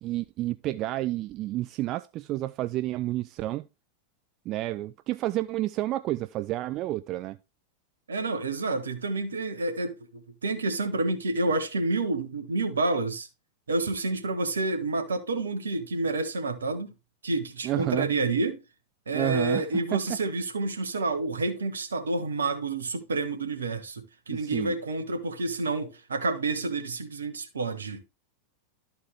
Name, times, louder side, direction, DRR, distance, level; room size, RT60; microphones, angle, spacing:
voice 1, 0.0-3.7 4.5-7.4 17.6-18.1 19.1-20.0 24.3-24.7, right 15 dB, 35° right, 0.3 m, -30 dB
voice 2, 8.1-13.3 13.7-16.9 17.2-18.6 19.1-28.0, right 3 dB, 70° right, 1.4 m, -29 dB
13.0 x 4.4 x 3.4 m
figure-of-eight pair, 90°, 0 cm